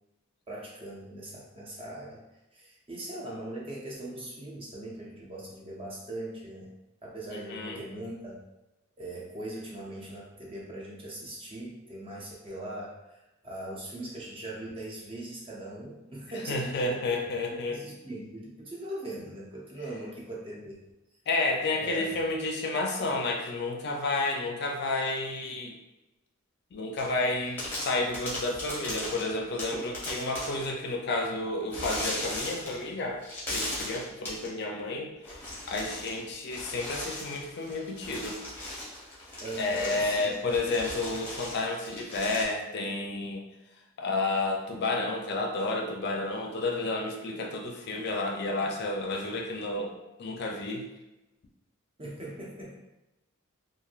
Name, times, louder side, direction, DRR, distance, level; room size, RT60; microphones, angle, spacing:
voice 1, 0.5-2.2 2.5-6.7 7.0-8.4 9.0-17.2 17.5-20.8 21.8-22.1 39.4-40.4 52.0-52.8, right 1 dB, 25° right, -4 dB, 0.6 m, -40 dB
voice 2, 7.3-7.8 16.5-17.8 21.3-25.7 26.7-33.2 33.5-35.1 35.7-38.4 39.6-43.4 44.0-50.9, left 2 dB, 50° left, 1 dB, 0.4 m, -31 dB
sound 1, 27.0-27.2 27.6-30.7 31.7-32.9 33.2-34.5 35.2-36.2 36.5-42.4, left 1 dB, 10° left, 0.8 m, -37 dB
3.0 x 2.5 x 2.4 m, 0.99 s
head